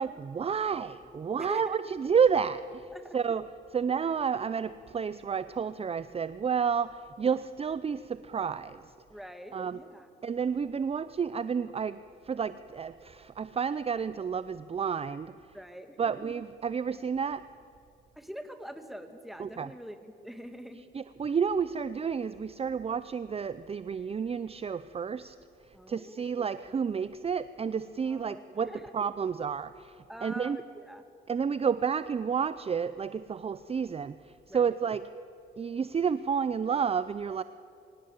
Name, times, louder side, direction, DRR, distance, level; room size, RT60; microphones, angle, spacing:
voice 1, 0.0-8.9 9.5-9.8 10.2-12.0 12.2-15.3 16.0-17.4 19.4-19.7 20.9-25.4 25.7-30.6 31.3-35.0 35.6-37.4, right 6 dB, 30° right, 14 dB, 0.6 m, -30 dB
voice 2, 1.4-1.8 2.9-3.2 9.1-10.1 15.5-16.2 18.2-20.9 25.7-26.3 28.1-28.9 30.1-31.0 34.5-34.7, equal, ahead, 7 dB, 2.3 m, -44 dB
24.5 x 17.0 x 8.8 m, 2.5 s
cardioid pair, 90°, 20 cm